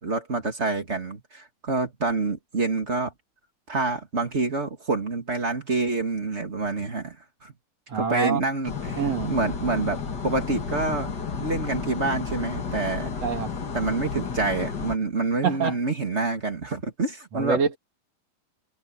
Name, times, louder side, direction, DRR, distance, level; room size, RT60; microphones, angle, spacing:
voice 1, 0.0-3.1 3.7-7.1 7.4-7.5 7.9-9.0 9.3-11.1 11.4-13.1 13.7-17.6, right 3 dB, 25° right, 1.8 m, -27 dB
voice 2, 7.9-8.4 9.0-9.3 13.2-13.5 15.4-15.8 17.3-17.8, right 6 dB, 45° right, 3.5 m, -25 dB
sound 1, 8.6-15.0, left 5 dB, 35° left, 1.9 m, -32 dB
omnidirectional pair, 4.1 m